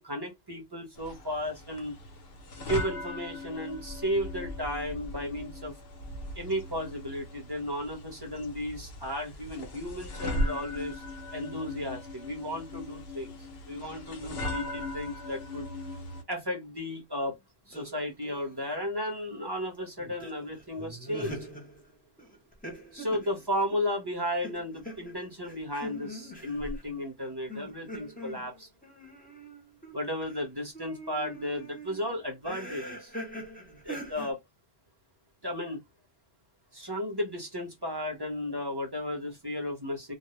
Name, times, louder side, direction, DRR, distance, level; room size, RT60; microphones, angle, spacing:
voice 1, 0.0-2.0 2.5-5.7 6.3-11.0 11.3-13.3 13.7-15.7 16.3-17.4 17.7-21.4 22.9-28.7 29.9-33.1 33.7-34.4 35.4-35.8 36.7-40.1, left 1 dB, 25° right, 0.8 m, -34 dB
sound 1, 1.0-16.2, left 1 dB, 70° left, 0.9 m, -38 dB
sound 2, 17.7-18.8 19.1-19.2 20.0-24.0 24.4-26.8 27.5-30.5 30.7-34.3, equal, 10° left, 0.8 m, -43 dB
2.3 x 2.0 x 3.0 m
omnidirectional pair, 1.1 m